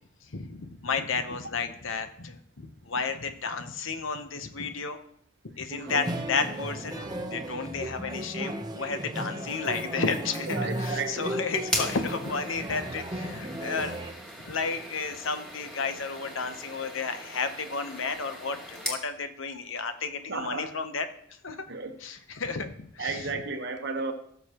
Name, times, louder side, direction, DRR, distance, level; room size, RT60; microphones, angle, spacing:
voice 1, 0.3-2.4 2.8-5.0 5.6-14.0 14.4-21.1 21.4-21.6 22.0-23.4, left 4 dB, 70° left, 9 dB, 0.9 m, -32 dB
sound 1, 5.9-14.1, right 1 dB, 20° right, 0.9 m, -35 dB
voice 2, 10.5-11.4 20.3-20.7 21.7-22.0 23.0-24.1, right 4 dB, 55° right, 6 dB, 1.1 m, -33 dB
sound 2, 11.6-19.0, equal, 5° left, 2.1 m, -38 dB
16.5 x 6.9 x 3.0 m, 0.66 s
head